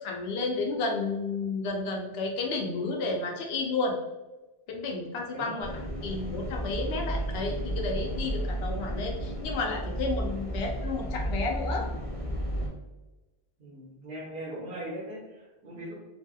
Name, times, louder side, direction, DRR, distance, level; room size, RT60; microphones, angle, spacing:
voice 1, 0.0-4.0 4.7-5.7 6.0-11.9, left 3 dB, 75° left, 1 dB, 0.8 m, -31 dB
sound 1, 5.6-12.7, equal, 10° right, 0.9 m, -33 dB
voice 2, 13.6-15.9, right 1 dB, 70° right, -5 dB, 0.9 m, -39 dB
2.9 x 2.8 x 2.3 m, 1.1 s
omnidirectional pair, 1.1 m